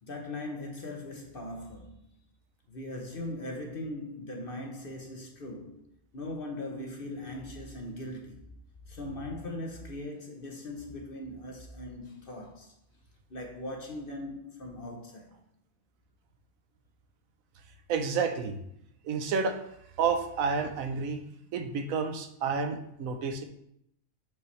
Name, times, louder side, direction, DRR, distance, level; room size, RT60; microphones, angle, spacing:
voice 1, 0.0-2.1 2.7-5.9 6.1-8.5 8.9-12.7 13.3-15.4, left 1 dB, 45° left, 0.9 m, -40 dB
voice 2, 17.9-18.6 19.0-19.6 20.0-21.2 21.5-23.4, right 5 dB, 75° right, 1.1 m, -30 dB
7.1 x 5.5 x 3.2 m
omnidirectional pair, 1.5 m